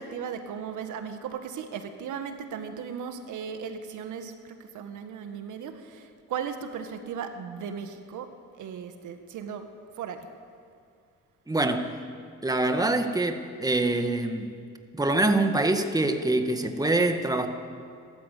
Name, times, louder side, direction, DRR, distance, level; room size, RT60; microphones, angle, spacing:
voice 1, 0.0-9.7 10.0-10.3, right 7 dB, 80° right, 7 dB, 1.9 m, -37 dB
voice 2, 11.5-11.9 12.4-14.5 14.9-17.5, right 2 dB, 10° right, 6 dB, 1.8 m, -25 dB
29.0 x 13.5 x 8.5 m, 2.3 s
cardioid pair, 90°, 30 cm